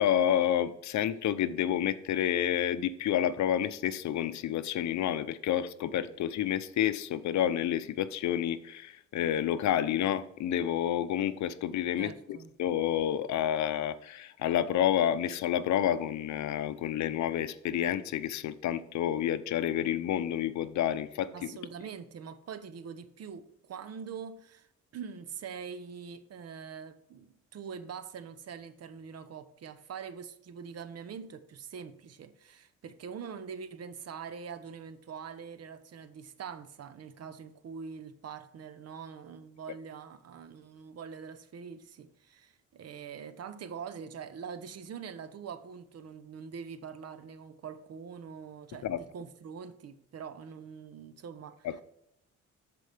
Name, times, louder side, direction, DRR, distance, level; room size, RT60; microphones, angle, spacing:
voice 1, 0.0-21.5 48.8-49.0 51.6-51.8, left 10 dB, 70° left, 0.7 m, -29 dB
voice 2, 12.0-12.5 21.3-24.7 24.9-51.8, right 6 dB, 55° right, 0.9 m, -44 dB
13.0 x 4.7 x 3.4 m
cardioid pair, 90°, 30 cm